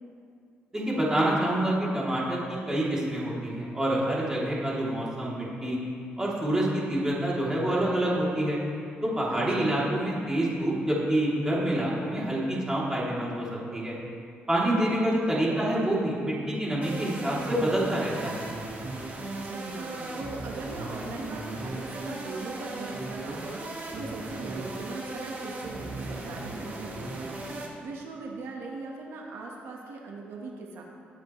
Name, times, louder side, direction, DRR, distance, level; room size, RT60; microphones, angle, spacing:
voice 1, 0.7-5.8 6.2-8.6 9.0-13.9 14.5-18.4, right 1 dB, 15° right, -6 dB, 3.0 m, -27 dB
voice 2, 9.3-9.9 15.5-15.8 19.4-30.8, right 3 dB, 85° right, 0 dB, 1.4 m, -40 dB
sound 1, 16.8-27.7, right 2 dB, 45° right, 1.8 m, -37 dB
20.0 x 8.3 x 3.2 m, 2.4 s
cardioid pair, 125°, 4 cm